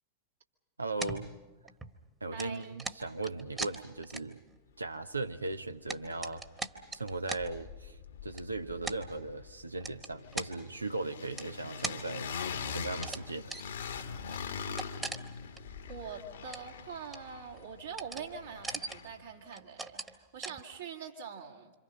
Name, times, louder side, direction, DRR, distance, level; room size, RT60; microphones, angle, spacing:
voice 1, 0.8-1.3 2.2-4.4 4.8-6.4 6.9-8.0 8.2-12.3 12.7-13.5, right 3 dB, 80° right, 10 dB, 0.8 m, -38 dB
sound 1, 1.0-2.0 2.4-4.6 4.9-5.0 5.5-7.4 8.3-8.4 8.8-9.0 9.8-10.5 11.4-12.0 12.9-13.2 13.5-13.7 14.0-14.1 14.3-15.6 15.9-16.0 16.3-16.8 17.1-17.6 17.9-18.3 18.5-19.1 19.5-20.2 20.4-20.6, right 3 dB, 15° right, 1.4 m, -40 dB
voice 2, 2.3-2.8 15.9-21.7, right 6 dB, 65° right, -1 dB, 2.5 m, -44 dB
sound 2, 5.3-5.4 5.7-6.8 7.1-19.3, left 6 dB, 65° left, 1.7 m, -43 dB
27.5 x 26.5 x 5.5 m, 1.2 s
figure-of-eight pair, 90°, 0 cm